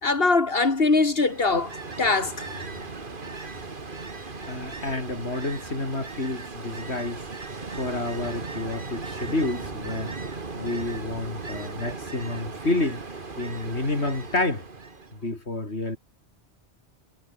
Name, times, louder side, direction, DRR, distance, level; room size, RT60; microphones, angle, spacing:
voice 1, 0.0-2.3, left 3 dB, 60° left, 2.8 m, -22 dB
Ocean, 1.1-15.2, right 3 dB, 50° right, 2.1 m, -37 dB
voice 2, 4.5-7.2 7.8-10.2 10.5-13.0 13.4-14.6 15.2-16.0, left 2 dB, 75° left, 4.7 m, -29 dB
omnidirectional pair, 1.1 m